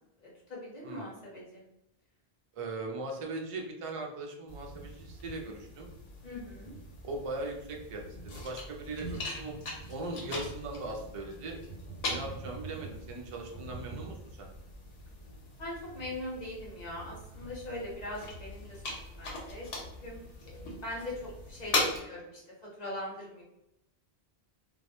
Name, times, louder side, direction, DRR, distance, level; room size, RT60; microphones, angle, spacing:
voice 1, 0.2-1.6 6.2-6.7 15.6-20.2 20.8-21.7 22.0-22.4 22.8-23.4, left 1 dB, 45° left, -4 dB, 0.8 m, -41 dB
voice 2, 2.5-5.9 7.0-9.6 9.9-11.6 12.0-14.5, right 2 dB, 50° right, 1 dB, 0.4 m, -39 dB
sound 1, 4.5-22.0, left 2 dB, 80° left, 0.9 m, -40 dB
2.2 x 2.0 x 2.8 m, 0.85 s
omnidirectional pair, 1.0 m